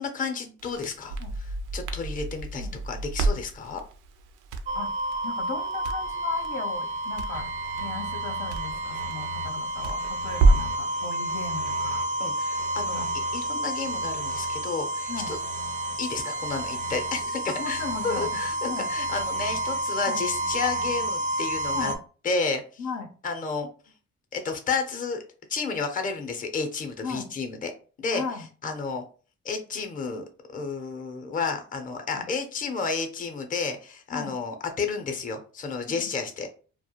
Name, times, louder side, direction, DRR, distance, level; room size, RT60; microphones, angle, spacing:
voice 1, 0.0-1.2 1.5-3.8 12.2-13.0 13.3-15.4 16.0-21.9 22.2-22.8 23.2-23.7 24.3-25.2 25.5-27.7 28.0-28.2 28.6-29.0 29.4-36.5, left 4 dB, 25° left, 6 dB, 0.5 m, -31 dB
Crackle, 0.6-10.8, right 3 dB, 85° right, 0.5 m, -29 dB
sound 1, 4.7-22.0, right 1 dB, 25° right, 0.4 m, -30 dB
voice 2, 5.2-7.5 7.8-12.1 12.9-13.1 15.1-15.3 17.5-18.4 18.7-18.9 20.1-20.2 21.7-22.0 22.8-23.1 27.0-27.3 28.1-28.5 32.1-32.3 34.1-34.4 35.9-36.1, left 5 dB, 85° left, 6 dB, 0.6 m, -36 dB
2.3 x 2.1 x 2.7 m, 0.38 s
cardioid pair, 90°, 30 cm